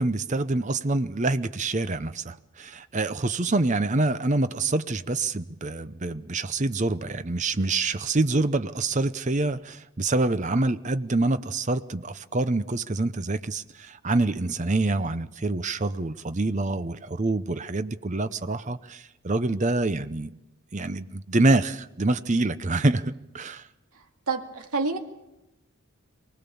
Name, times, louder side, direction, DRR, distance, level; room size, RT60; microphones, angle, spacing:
voice 1, 0.0-20.3 20.7-23.7, right 2 dB, 35° right, 0.7 m, -26 dB
voice 2, 24.3-25.0, right 4 dB, 90° right, 2.3 m, -27 dB
24.0 x 19.0 x 7.0 m
head